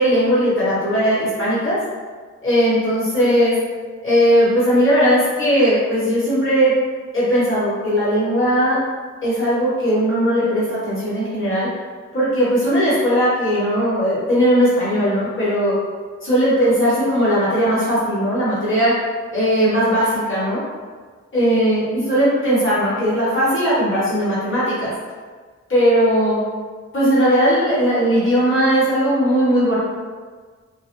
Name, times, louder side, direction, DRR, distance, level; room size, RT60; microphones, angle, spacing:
voice 1, 0.0-1.8 2.4-3.5 4.0-6.7 7.1-8.8 9.2-11.7 12.1-15.7 16.2-18.9 19.3-20.6 21.3-24.9 25.7-26.4 26.9-29.8, equal, 45° left, -9 dB, 1.0 m, -18 dB
2.1 x 2.1 x 2.9 m, 1.5 s
wide cardioid pair, 165°, 29 cm